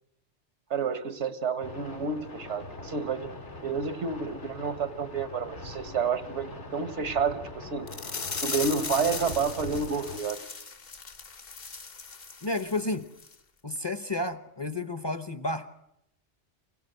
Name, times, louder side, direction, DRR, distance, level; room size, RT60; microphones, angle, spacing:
voice 1, 0.7-3.3 3.6-7.9 8.4-10.4, right 5 dB, 85° right, 11 dB, 1.6 m, -30 dB
sound 1, 1.6-10.2, left 2 dB, 80° left, 3.4 m, -42 dB
sound 2, 7.9-12.9 13.2-13.4 13.8-13.9, left 4 dB, 55° left, 1.4 m, -38 dB
voice 2, 12.4-13.1 13.6-15.7, left 2 dB, 25° left, 11 dB, 0.8 m, -31 dB
25.5 x 16.5 x 7.9 m, 0.80 s
omnidirectional pair, 1.2 m